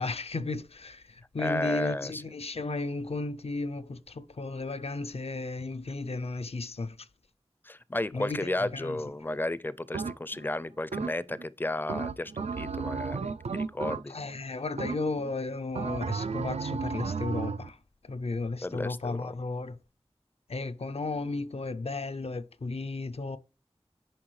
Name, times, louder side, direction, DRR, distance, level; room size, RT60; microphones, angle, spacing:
voice 1, 0.0-7.1 8.1-9.0 14.1-17.8 18.0-19.8 20.5-23.4, left 3 dB, 70° left, 0.5 m, -34 dB
voice 2, 1.4-2.2 7.6-14.1 18.6-19.3, left 1 dB, 20° left, 0.4 m, -33 dB
sound 1, 9.9-10.5 10.9-11.4 11.9-14.4 14.8-15.3 15.7-17.7, right 5 dB, 90° right, 0.4 m, -33 dB
10.0 x 6.0 x 3.2 m
wide cardioid pair, 55°, 11 cm